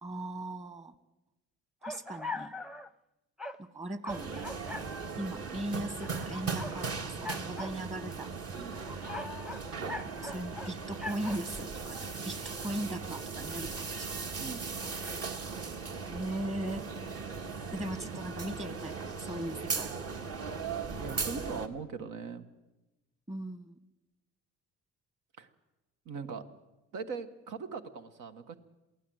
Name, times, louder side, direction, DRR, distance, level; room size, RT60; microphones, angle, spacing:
voice 1, 0.0-0.9 1.8-2.5 3.6-4.4 4.8-8.3 10.2-14.1 16.1-16.8 17.7-19.9 23.3-23.8, right 1 dB, 20° right, 12 dB, 1.5 m, -39 dB
sound 1, 1.8-2.9 3.4-3.6 4.0-4.9 6.0-6.8 7.2-7.8 8.5-10.7 11.0-11.4, left 2 dB, ahead, 0.7 m, -41 dB
sound 2, 4.1-21.7, right 4 dB, 50° right, 1.8 m, -38 dB
voice 2, 8.5-8.9 14.4-14.7 21.0-22.5 25.4-25.5 26.0-26.4 26.9-28.6, right 5 dB, 90° right, 8 dB, 1.5 m, -40 dB
23.0 x 15.5 x 7.9 m, 1.0 s
cardioid pair, 90°, 30 cm